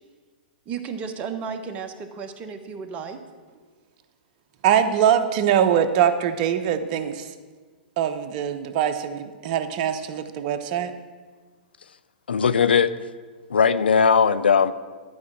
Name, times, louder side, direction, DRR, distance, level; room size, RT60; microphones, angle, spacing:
voice 1, 0.7-3.2, right 6 dB, 30° right, 6 dB, 1.2 m, -33 dB
voice 2, 4.6-7.3 8.0-10.9, right 9 dB, 45° right, 9 dB, 0.9 m, -22 dB
voice 3, 12.3-12.9 13.5-14.7, left 6 dB, 90° left, 15 dB, 0.5 m, -18 dB
12.0 x 5.3 x 8.6 m, 1.4 s
hypercardioid pair, 125°, 5 cm